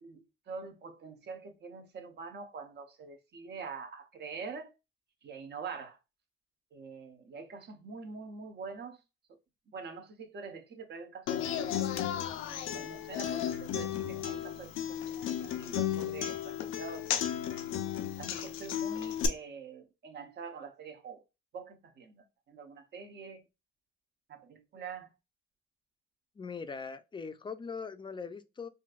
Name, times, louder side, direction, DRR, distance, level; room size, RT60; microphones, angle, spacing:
voice 1, 0.0-4.7 5.2-6.0 6.7-9.0 9.7-12.0 12.7-17.2 18.2-21.2 21.5-23.4 24.3-25.1, right 5 dB, 60° right, 0.8 m, -45 dB
Human voice / Acoustic guitar, 11.3-19.3, left 10 dB, 85° left, 0.5 m, -34 dB
voice 2, 26.4-28.7, left 5 dB, 25° left, 0.4 m, -41 dB
4.0 x 2.5 x 2.4 m
cardioid pair, 90°, 20 cm